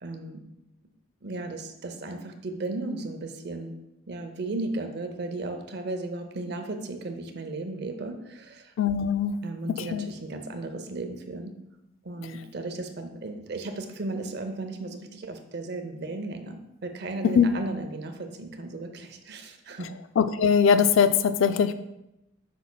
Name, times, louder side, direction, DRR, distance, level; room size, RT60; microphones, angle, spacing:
voice 1, 0.0-0.4 1.2-3.8 4.1-8.7 9.4-11.6 12.0-19.9, right 2 dB, 55° right, 7 dB, 0.6 m, -35 dB
voice 2, 8.8-9.4 9.9-10.1 17.3-17.5 20.2-21.7, left 7 dB, 70° left, 11 dB, 0.3 m, -21 dB
8.2 x 5.7 x 2.3 m, 0.88 s
head